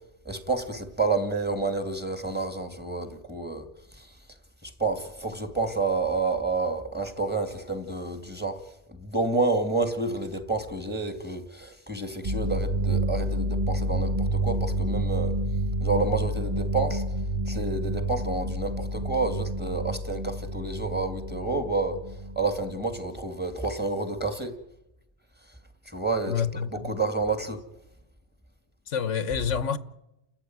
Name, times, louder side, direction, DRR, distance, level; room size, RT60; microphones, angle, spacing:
voice 1, 0.2-3.7 3.9-4.2 4.6-8.6 8.9-15.3 15.8-17.2 17.5-24.6 25.9-26.4 26.7-27.6, right 3 dB, 10° right, 2.2 m, -29 dB
sound 1, 12.2-23.0 23.6-23.9, right 1 dB, 35° right, 1.0 m, -29 dB
voice 2, 26.3-26.9 28.9-29.8, left 7 dB, 90° left, 1.4 m, -28 dB
29.5 x 13.5 x 9.4 m
omnidirectional pair, 1.2 m